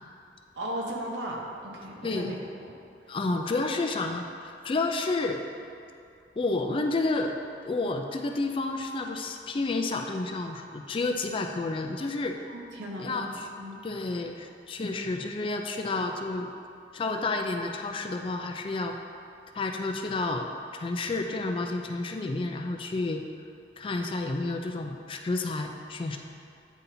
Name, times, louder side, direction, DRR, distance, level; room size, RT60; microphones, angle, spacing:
voice 1, 0.5-2.3 2.6-2.7 12.5-13.8, right 1 dB, 90° right, -2 dB, 1.0 m, -36 dB
voice 2, 2.0-2.4 3.1-5.4 6.4-7.4 7.6-12.4 13.0-13.5 13.8-16.5 16.9-19.0 19.5-20.5 20.7-23.2 23.8-26.2, left 3 dB, 30° left, 4 dB, 0.3 m, -30 dB
9.1 x 4.1 x 2.7 m, 2.5 s
head